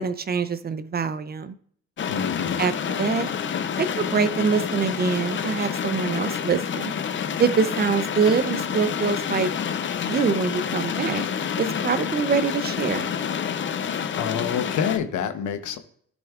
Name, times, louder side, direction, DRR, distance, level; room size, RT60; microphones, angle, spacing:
voice 1, 0.0-1.5 2.6-3.3 3.8-6.9 7.4-9.5 10.0-11.3 11.6-13.1, right 5 dB, 30° right, 14 dB, 0.5 m, -24 dB
sound 1, 2.0-15.0, left 7 dB, 40° left, 0.6 m, -28 dB
voice 2, 2.1-2.6 14.1-15.8, left 8 dB, 80° left, 9 dB, 1.0 m, -27 dB
12.0 x 6.1 x 2.4 m, 0.63 s
cardioid pair, 90°, 30 cm